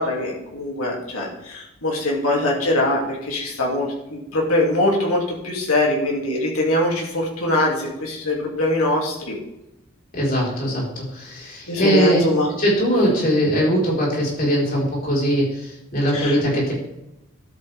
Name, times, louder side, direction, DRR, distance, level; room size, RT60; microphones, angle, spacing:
voice 1, 0.0-9.3 11.7-12.5 16.1-16.4, left 1 dB, 80° left, -2 dB, 2.7 m, -22 dB
voice 2, 10.1-12.2 12.6-16.7, equal, 40° left, -4 dB, 4.5 m, -21 dB
12.5 x 8.8 x 3.5 m, 0.87 s
head